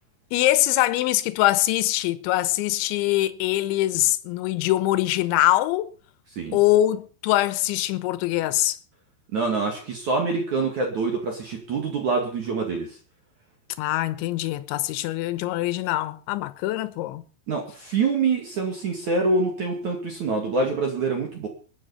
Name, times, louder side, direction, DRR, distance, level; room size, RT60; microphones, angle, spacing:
voice 1, 0.3-5.9 6.5-8.8 13.8-17.2, left 15 dB, 80° left, 3.2 m, -23 dB
voice 2, 9.3-12.9 17.5-21.5, right 4 dB, 45° right, 2.9 m, -25 dB
21.5 x 9.5 x 5.7 m
omnidirectional pair, 5.6 m